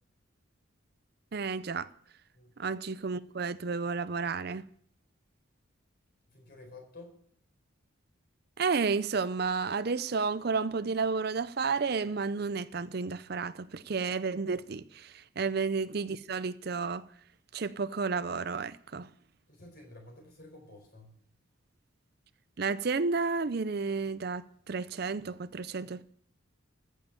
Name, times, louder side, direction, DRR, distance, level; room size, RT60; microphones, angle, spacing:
voice 1, 1.3-1.9 2.6-4.6 8.6-17.1 17.5-19.1 22.6-26.0, right 4 dB, 50° right, 0.5 m, -32 dB
voice 2, 6.3-7.2 19.5-21.2, left 2 dB, 50° left, 4.5 m, -51 dB
14.5 x 6.5 x 8.8 m
head